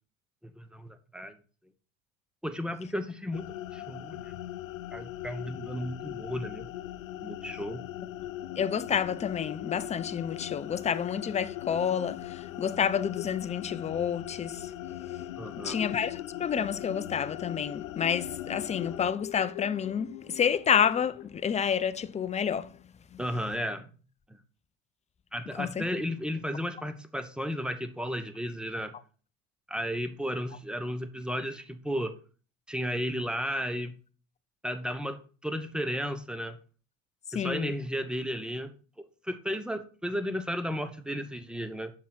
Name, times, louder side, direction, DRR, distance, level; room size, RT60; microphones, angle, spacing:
voice 1, 0.6-1.4 2.4-4.2 4.9-6.7 7.2-7.8 15.4-15.8 23.2-23.9 25.3-28.9 29.7-32.1 32.7-33.9 34.6-36.6 37.3-38.7 39.2-41.9, equal, ahead, 0.9 m, -34 dB
sound 1, 3.3-19.1, left 13 dB, 90° left, 0.6 m, -40 dB
sound 2, 8.4-22.8, left 14 dB, 60° left, 1.1 m, -46 dB
voice 2, 8.6-14.7 15.1-15.2 15.6-22.8 23.1-23.2 25.6-25.9 37.3-37.7, left 7 dB, 20° left, 0.5 m, -29 dB
7.3 x 5.8 x 4.0 m
hypercardioid pair, 85°, 39 cm